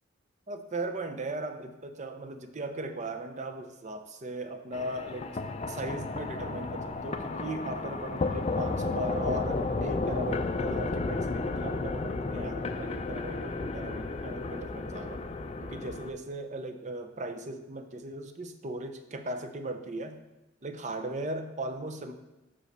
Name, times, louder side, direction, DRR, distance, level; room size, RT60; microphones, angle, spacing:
voice 1, 0.5-5.3 5.7-15.2 15.6-20.2 20.6-22.1, right 1 dB, 40° right, 7 dB, 0.6 m, -38 dB
sound 1, 4.7-16.1, left 3 dB, 35° left, 0.4 m, -33 dB
5.6 x 5.1 x 6.5 m, 1.1 s
head